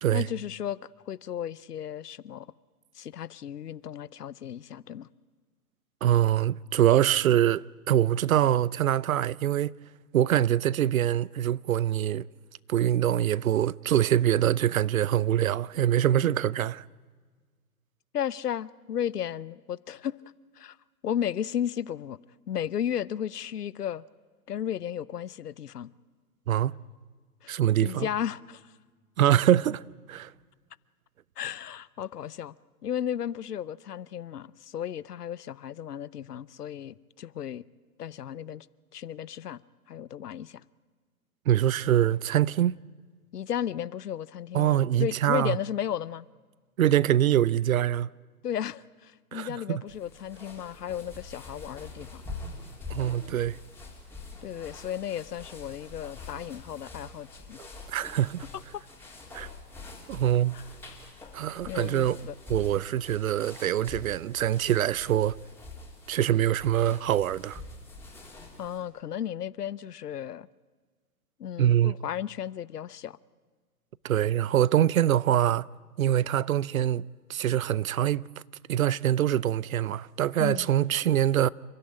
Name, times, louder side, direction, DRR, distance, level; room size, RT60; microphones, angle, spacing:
voice 1, 0.1-0.8 1.1-2.5 2.9-5.1 18.1-20.2 20.6-20.8 21.0-22.2 22.5-24.0 24.5-25.9 27.4-28.7 31.4-32.5 32.8-37.6 38.0-38.7 38.9-39.6 39.9-40.6 43.3-46.3 48.4-52.2 54.4-57.6 58.7-58.8 60.5-60.6 61.7-62.3 68.6-70.5 71.4-73.2 80.4-80.7, left 9 dB, 80° left, 0.8 m, -34 dB
voice 2, 6.0-9.7 10.1-12.2 12.7-16.8 26.5-26.8 27.5-28.1 29.2-29.8 30.1-30.3 41.5-42.8 44.5-45.6 46.8-48.1 49.3-49.8 52.9-53.6 57.9-58.5 59.3-59.5 60.1-60.5 61.3-62.2 62.5-65.4 66.1-67.6 71.6-71.9 74.0-75.7 76.0-78.2 78.7-81.5, right 11 dB, 60° right, 0.6 m, -24 dB
sound 1, 49.9-68.8, left 3 dB, 5° left, 3.3 m, -45 dB
28.5 x 13.0 x 10.0 m
hypercardioid pair, 130°, 46 cm